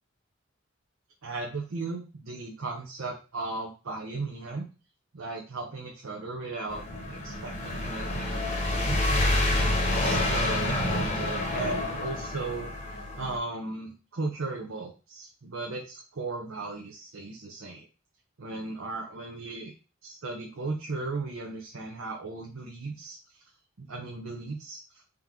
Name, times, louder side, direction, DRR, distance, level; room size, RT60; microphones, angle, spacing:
voice 1, 1.2-4.7 5.1-6.8 7.1-9.0 9.6-17.9 18.4-19.7 20.0-23.2 23.8-25.0, right 3 dB, 75° right, 0 dB, 0.7 m, -36 dB
sound 1, 6.7-13.4, left 1 dB, 30° left, 0.9 m, -28 dB
3.7 x 2.9 x 3.5 m, 0.34 s
head